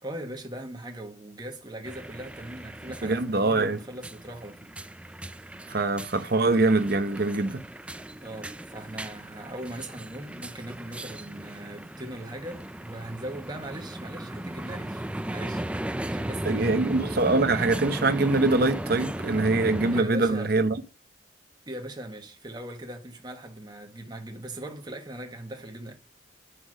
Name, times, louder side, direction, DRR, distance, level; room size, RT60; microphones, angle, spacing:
voice 1, 0.0-4.7 8.2-15.7 16.1-16.9 19.9-20.6 21.7-25.9, right 1 dB, 20° right, 1.4 m, -39 dB
sound 1, 1.8-20.0, right 1 dB, 5° right, 0.4 m, -36 dB
voice 2, 3.0-3.8 5.7-7.6 16.4-20.8, right 3 dB, 50° right, 0.8 m, -23 dB
9.7 x 5.9 x 6.2 m
head